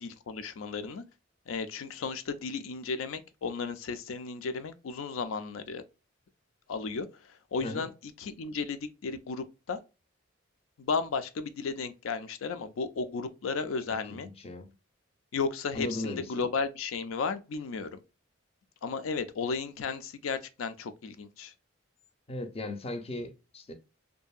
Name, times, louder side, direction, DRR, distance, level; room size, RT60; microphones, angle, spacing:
voice 1, 0.0-1.0 1.5-5.8 6.7-9.8 10.8-14.3 15.3-18.0 18.8-21.5, left 4 dB, 90° left, 0.4 m, -34 dB
voice 2, 14.1-14.7 15.7-16.2 22.3-23.7, left 2 dB, 30° left, 0.5 m, -37 dB
2.7 x 2.6 x 2.3 m
head